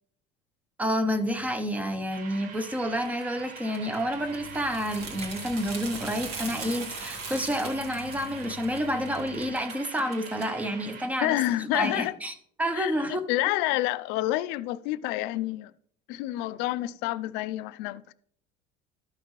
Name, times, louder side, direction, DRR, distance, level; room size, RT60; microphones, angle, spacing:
voice 1, 0.8-11.4 11.7-12.3 12.6-13.2, equal, 10° right, 0.7 m, -29 dB
sound 1, 2.1-11.1, right 5 dB, 50° right, 1.0 m, -44 dB
sound 2, 2.9-10.8, right 2 dB, 30° right, 2.0 m, -49 dB
sound 3, 4.0-9.5, right 3 dB, 80° right, 2.2 m, -40 dB
voice 2, 11.2-12.2 12.7-15.7 16.1-18.1, left 16 dB, 65° left, 0.4 m, -28 dB
12.5 x 5.8 x 3.1 m
cardioid pair, 155°, 19 cm